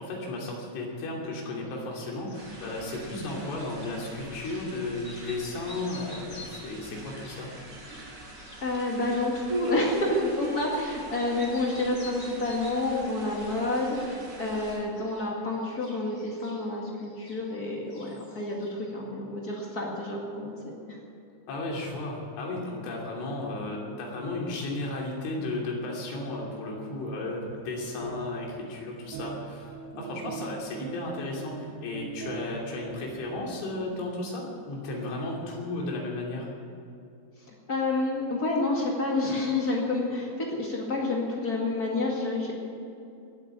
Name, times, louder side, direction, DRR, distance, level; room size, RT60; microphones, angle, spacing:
voice 1, 0.0-7.5 21.5-36.5, left 2 dB, 85° left, -2 dB, 5.4 m, -34 dB
sound 1, 1.7-4.0 4.4-4.7 5.0-10.9 11.1-13.0 13.3-14.1 14.4-17.6 17.9-18.9, left 2 dB, 30° left, 3.3 m, -50 dB
sound 2, 2.3-14.8, right 2 dB, 65° right, 5.9 m, -46 dB
voice 2, 8.6-21.0 37.7-42.5, left 2 dB, 65° left, -2 dB, 0.9 m, -29 dB
sound 3, 26.7-34.4, right 6 dB, 80° right, 3.1 m, -43 dB
20.0 x 8.3 x 8.1 m, 2.6 s
omnidirectional pair, 5.4 m